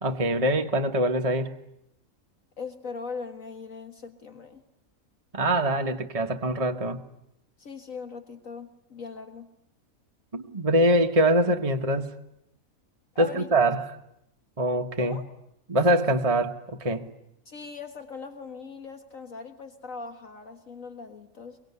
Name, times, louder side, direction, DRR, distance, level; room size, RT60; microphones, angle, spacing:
voice 1, 0.0-1.5 5.3-7.0 10.3-12.1 13.2-13.8 14.6-15.2 15.7-17.0, right 1 dB, 25° right, 4 dB, 1.3 m, -24 dB
voice 2, 2.6-4.6 7.6-9.5 13.2-13.5 15.0-15.3 17.5-21.6, left 4 dB, 65° left, 6 dB, 2.1 m, -40 dB
24.5 x 23.5 x 9.6 m, 0.79 s
omnidirectional pair, 1.5 m